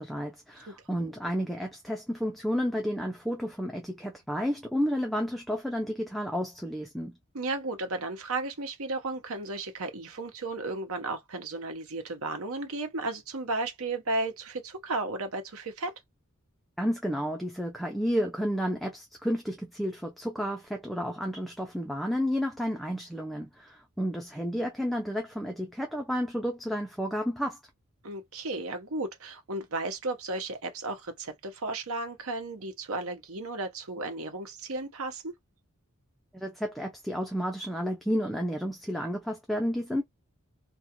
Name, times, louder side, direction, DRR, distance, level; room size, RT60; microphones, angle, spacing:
voice 1, 0.0-7.2 16.8-27.6 36.3-40.0, equal, ahead, 0.4 m, -31 dB
voice 2, 7.3-15.9 28.0-35.3, right 2 dB, 85° right, 0.9 m, -34 dB
2.4 x 2.2 x 2.9 m
head